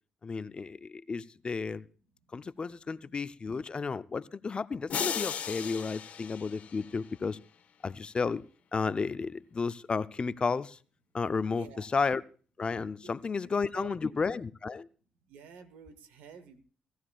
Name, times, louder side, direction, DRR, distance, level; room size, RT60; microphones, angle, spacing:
voice 1, 0.2-1.8 2.3-7.4 7.8-8.4 8.7-10.8 11.1-12.2 12.6-14.9, left 4 dB, 40° left, 0.5 m, -32 dB
sound 1, 4.9-7.2, left 8 dB, 65° left, 1.0 m, -36 dB
voice 2, 11.5-11.9 13.0-13.1 13.4-14.2 15.3-16.6, right 6 dB, 85° right, 1.2 m, -50 dB
18.0 x 14.0 x 2.3 m
supercardioid pair, 55°, 3 cm